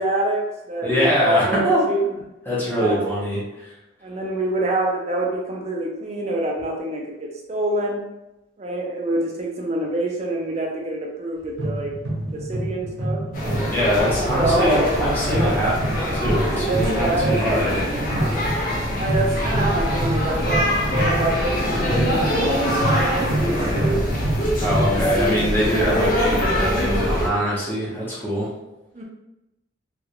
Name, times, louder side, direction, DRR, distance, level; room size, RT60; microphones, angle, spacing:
voice 1, 0.0-2.0 2.7-3.1 4.0-8.0 8.6-11.9 12.3-13.7 14.3-15.0 16.4-17.7 18.9-24.0 28.9-29.0, right 2 dB, 35° right, -1 dB, 0.5 m, -26 dB
voice 2, 0.8-1.8 2.5-3.7 13.6-17.8 24.6-28.5, equal, 10° left, -7 dB, 0.9 m, -23 dB
sound 1, 11.6-25.1, right 1 dB, 90° right, 0.8 m, -27 dB
sound 2, 13.3-27.3, equal, 45° left, 0.7 m, -24 dB
3.0 x 2.5 x 2.9 m, 0.93 s
head